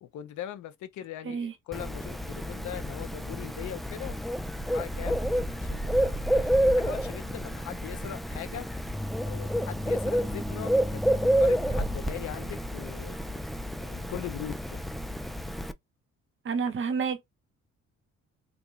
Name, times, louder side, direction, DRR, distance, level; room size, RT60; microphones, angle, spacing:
voice 1, 0.0-4.2 4.7-8.7 9.2-13.4 13.8-14.8, left 11 dB, 75° left, 0.7 m, -41 dB
Bird, 1.7-15.7, equal, ahead, 0.3 m, -29 dB
voice 2, 16.4-17.2, right 5 dB, 40° right, 1.0 m, -29 dB
3.7 x 2.8 x 2.5 m
cardioid pair, 90°, 30 cm